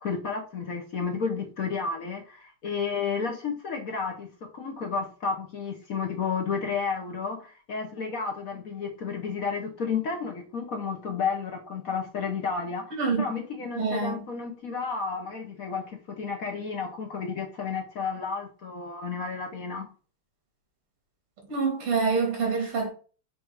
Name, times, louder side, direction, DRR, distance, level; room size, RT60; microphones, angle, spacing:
voice 1, 0.0-19.9, left 5 dB, 50° left, 1.1 m, -32 dB
voice 2, 12.9-13.2 13.8-14.2 21.5-22.9, right 4 dB, 85° right, 3.2 m, -26 dB
6.4 x 3.4 x 4.7 m
omnidirectional pair, 2.4 m